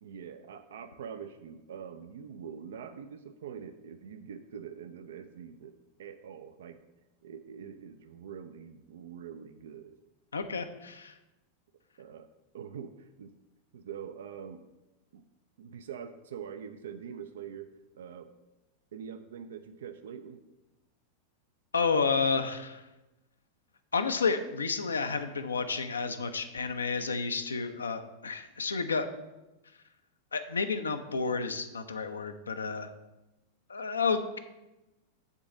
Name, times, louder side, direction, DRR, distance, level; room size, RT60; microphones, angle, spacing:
voice 1, 0.0-6.8 7.2-10.0 12.0-12.3 12.5-13.3 13.7-14.7 15.1-15.2 15.6-17.7 17.9-18.3 18.9-20.4, right 7 dB, 60° right, 9 dB, 0.4 m, -44 dB
voice 2, 10.3-11.1 21.7-22.8 23.9-29.1 30.3-32.9 33.7-34.4, left 5 dB, 75° left, 9 dB, 0.6 m, -30 dB
7.3 x 3.9 x 6.4 m, 1.0 s
figure-of-eight pair, 90°, 0 cm